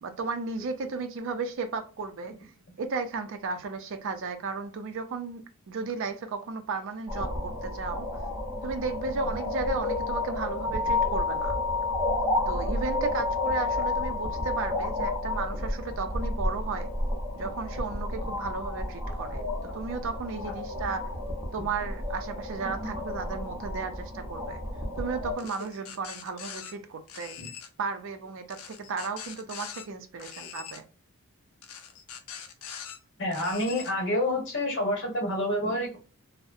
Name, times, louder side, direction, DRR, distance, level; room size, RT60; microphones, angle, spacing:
voice 1, 0.0-2.5 2.8-8.1 8.6-11.6 12.5-16.9 17.4-19.4 19.7-21.1 21.5-24.6 25.0-27.4 27.8-30.8, right 4 dB, 60° right, 0.4 m, -34 dB
sound 1, 7.1-25.3, left 2 dB, 15° right, 0.7 m, -31 dB
sound 2, 25.4-26.7 27.1-27.7 28.5-29.8 30.2-30.8 31.6-33.0 33.3-33.9, left 8 dB, 80° left, 0.5 m, -42 dB
voice 2, 33.2-36.0, left 1 dB, 55° left, 1.0 m, -28 dB
2.6 x 2.0 x 2.4 m
head